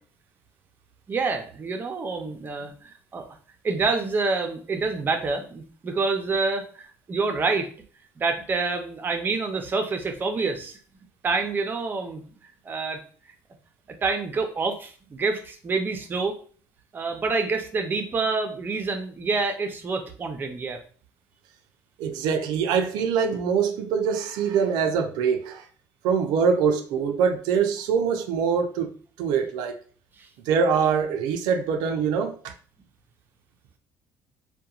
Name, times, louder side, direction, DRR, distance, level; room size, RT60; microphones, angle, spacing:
voice 1, 1.1-3.2 3.6-7.7 8.2-10.8 11.2-12.2 12.6-13.0 14.0-16.4 16.9-20.8 30.2-30.3, right 4 dB, 30° right, 0.5 m, -27 dB
voice 2, 22.0-25.6 26.0-28.9 29.2-29.8 30.5-32.3, right 6 dB, 85° right, 0.4 m, -23 dB
2.8 x 2.2 x 2.3 m
cardioid pair, 125°, 7 cm